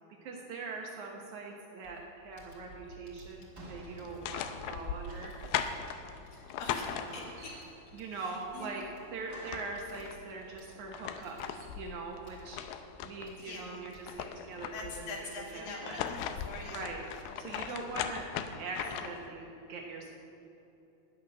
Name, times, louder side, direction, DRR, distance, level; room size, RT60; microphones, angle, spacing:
voice 1, 0.2-5.4 7.9-8.9 9.1-12.6 13.0-16.0 16.7-18.3 18.6-20.1, right 3 dB, 75° right, 0 dB, 1.8 m, -42 dB
Computer keyboard, 1.8-18.4, left 1 dB, 40° left, 2.5 m, -58 dB
sound 1, 3.6-6.3 6.5-6.6 6.9-8.0 8.6-9.9, right 1 dB, 45° right, 1.3 m, -52 dB
sound 2, 4.0-7.5 9.0-9.1 9.3-10.2 10.7-13.3 13.7-15.1 15.7-19.3, left 9 dB, 80° left, 2.3 m, -38 dB
voice 2, 6.3-7.6 8.1-8.7 13.4-13.8 14.7-17.2 17.7-17.8, left 3 dB, 60° left, -1 dB, 3.4 m, -44 dB
14.0 x 6.4 x 9.8 m, 2.9 s
omnidirectional pair, 5.0 m